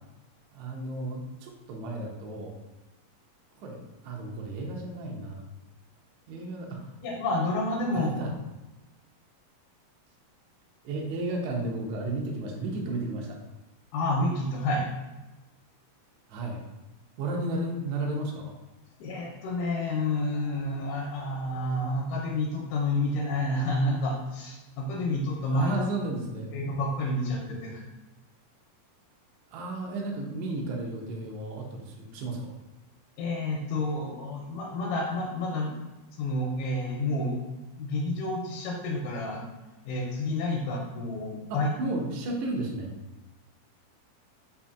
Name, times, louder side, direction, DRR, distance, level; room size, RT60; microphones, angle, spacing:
voice 1, 0.5-2.5 3.6-5.5 6.3-6.8 7.9-8.3 10.8-13.4 16.3-16.6 17.2-18.5 25.4-26.5 29.5-32.6 41.5-42.9, right 2 dB, 85° right, 0 dB, 1.6 m, -33 dB
voice 2, 7.0-8.1 13.9-14.9 19.0-25.8 26.5-27.8 33.2-35.7 36.2-37.4 37.8-39.4 39.9-41.7, left 1 dB, 85° left, -1 dB, 2.1 m, -29 dB
4.9 x 2.7 x 2.3 m, 1.1 s
omnidirectional pair, 3.7 m